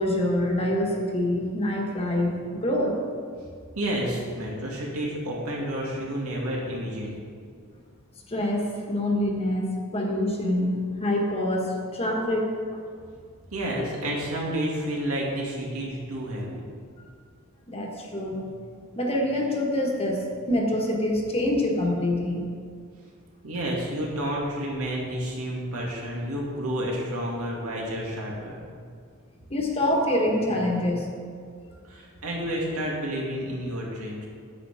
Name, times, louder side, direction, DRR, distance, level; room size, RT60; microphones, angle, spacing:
voice 1, 0.0-2.9 8.3-12.8 17.0-17.1 17.7-18.5 18.9-22.4 29.5-31.1, left 1 dB, 25° left, 0 dB, 1.4 m, -26 dB
voice 2, 3.8-7.2 13.5-16.7 23.4-28.6 31.9-34.3, equal, 90° right, -3 dB, 2.4 m, -30 dB
9.9 x 8.2 x 4.9 m, 2.1 s
head